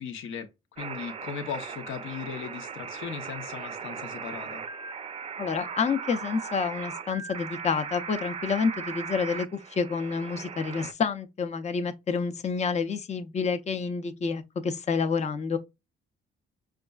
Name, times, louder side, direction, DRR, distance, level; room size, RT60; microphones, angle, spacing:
voice 1, 0.0-4.6, left 7 dB, 85° left, 0.9 m, -38 dB
sound 1, 0.8-10.9, right 6 dB, 30° right, 0.4 m, -38 dB
voice 2, 5.4-15.6, left 5 dB, 35° left, 0.6 m, -29 dB
5.2 x 2.4 x 2.3 m
cardioid pair, 90°, 20 cm